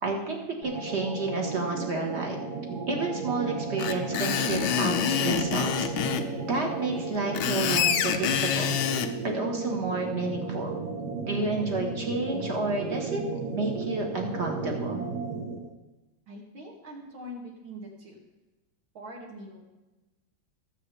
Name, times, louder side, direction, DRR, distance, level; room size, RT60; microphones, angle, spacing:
voice 1, 0.0-2.4 2.9-5.9 6.5-8.7 9.3-10.8 11.3-15.0, right 3 dB, 35° right, 1 dB, 1.7 m, -30 dB
sound 1, 0.6-15.7, right 4 dB, 55° right, 1.6 m, -34 dB
Screech, 3.8-6.3 7.2-9.1, left 9 dB, 85° left, 1.5 m, -26 dB
voice 2, 16.3-18.2 18.9-19.6, equal, 75° right, -1 dB, 3.1 m, -43 dB
19.5 x 7.7 x 3.4 m, 1.1 s
omnidirectional pair, 2.2 m